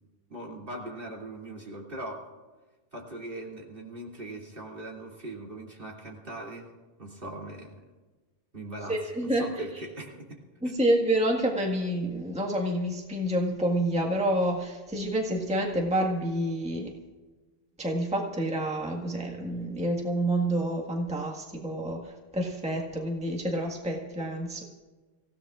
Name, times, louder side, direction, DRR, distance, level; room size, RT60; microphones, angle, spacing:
voice 1, 0.3-2.3 2.9-6.7 7.0-7.8 8.5-10.4 10.6-10.9, right 1 dB, 45° right, -2 dB, 3.0 m, -40 dB
voice 2, 8.9-9.8 10.6-16.9 17.8-24.6, right 1 dB, 5° right, -1 dB, 1.6 m, -28 dB
26.5 x 16.5 x 2.5 m, 1.3 s
omnidirectional pair, 1.3 m